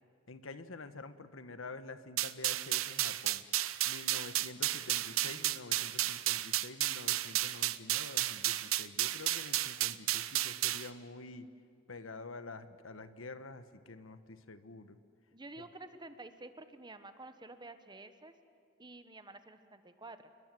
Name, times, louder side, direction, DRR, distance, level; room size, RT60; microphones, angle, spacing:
voice 1, 0.3-3.5 3.8-11.5 11.9-15.0, left 3 dB, 75° left, 11 dB, 1.3 m, -48 dB
sound 1, 2.2-10.9, right 14 dB, 85° right, 0.8 m, -33 dB
voice 2, 15.3-18.3 18.8-20.3, right 2 dB, 20° right, 10 dB, 1.2 m, -50 dB
28.5 x 21.5 x 7.8 m, 2.4 s
head